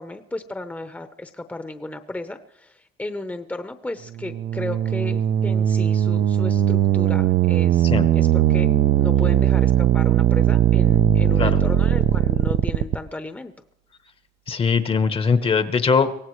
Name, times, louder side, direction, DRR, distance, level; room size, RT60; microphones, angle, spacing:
voice 1, 0.0-8.7 9.0-13.5, left 2 dB, 10° left, 8 dB, 0.8 m, -34 dB
sound 1, 4.2-13.0, right 11 dB, 60° right, 0.6 m, -19 dB
voice 2, 14.5-16.1, left 5 dB, 35° left, 11 dB, 1.0 m, -20 dB
24.0 x 17.0 x 3.2 m, 0.82 s
cardioid pair, 110°, 17 cm